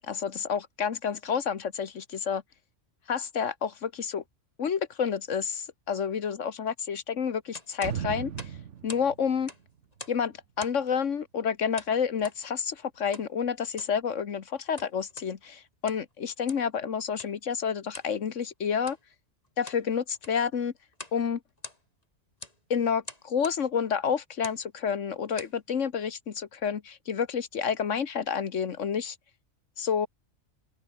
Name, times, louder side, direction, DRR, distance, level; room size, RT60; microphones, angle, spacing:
voice 1, 0.1-2.4 3.1-4.2 4.6-8.3 8.8-9.5 10.1-19.0 19.6-20.7 21.1-21.4 22.7-29.2 29.8-30.1, left 7 dB, 85° left, 1.6 m, -29 dB
sound 1, 7.5-9.1 9.4-10.3 10.6-10.9 11.8-12.4 13.1-13.3 13.7-14.0 14.6-15.3 15.7-16.1 16.5-16.7 17.2-17.4 17.9-18.1 18.8-19.0 19.4-19.9 20.1-20.5 20.9-21.2 21.5-22.0 22.4-22.6 23.0-23.6 24.3-24.6 25.1-25.6, left 2 dB, 30° left, 3.6 m, -44 dB
sound 2, 7.8-10.6 11.0-11.1, right 8 dB, 75° right, 1.3 m, -38 dB
open air
omnidirectional pair, 1.2 m